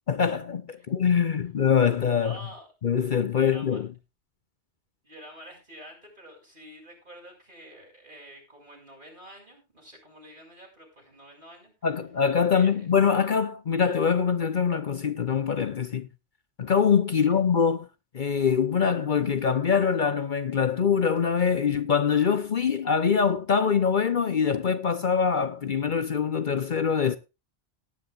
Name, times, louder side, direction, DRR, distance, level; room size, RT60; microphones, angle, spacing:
voice 1, 0.1-2.4 2.8-3.9 11.8-16.1 16.6-17.9 18.1-27.2, left 6 dB, 50° left, 0.9 m, -24 dB
voice 2, 2.2-2.7 3.3-3.8 5.0-11.7 12.5-12.9 17.2-17.3, right 1 dB, 45° right, 6.1 m, -48 dB
18.0 x 10.0 x 2.5 m
omnidirectional pair, 1.1 m